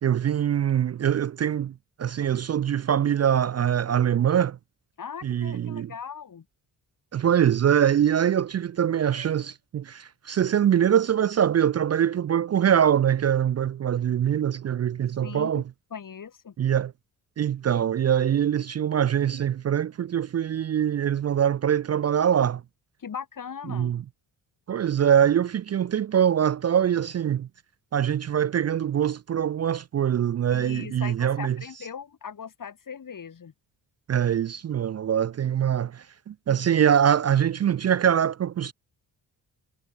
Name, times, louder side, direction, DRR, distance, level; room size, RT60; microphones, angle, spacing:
voice 1, 0.0-1.7 2.0-4.6 5.2-5.9 7.1-15.6 16.6-16.9 17.4-22.6 23.7-24.0 24.7-27.5 27.9-31.6 34.1-38.7, right 9 dB, 40° right, 0.5 m, -23 dB
voice 2, 5.0-6.4 15.2-15.6 15.9-16.5 23.0-23.9 30.5-33.5, left 7 dB, 50° left, 2.8 m, -39 dB
cardioid pair, 70°, 41 cm